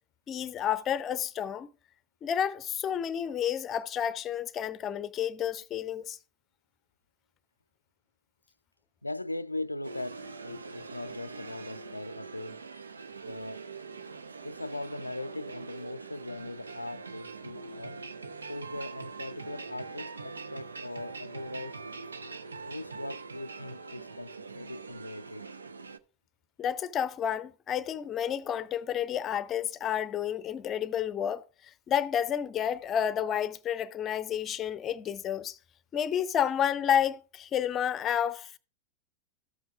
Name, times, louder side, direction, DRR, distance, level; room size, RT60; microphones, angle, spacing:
voice 1, 0.3-1.7 2.2-6.2 26.6-35.6 35.9-38.5, left 9 dB, 30° left, 0.6 m, -30 dB
voice 2, 9.0-12.6 13.2-13.7 14.4-18.1 18.5-21.8 22.7-25.5, left 2 dB, 85° left, 0.3 m, -40 dB
sound 1, 9.8-26.0, right 4 dB, 75° right, 0.6 m, -43 dB
14.0 x 7.8 x 2.4 m
figure-of-eight pair, 90°, 0 cm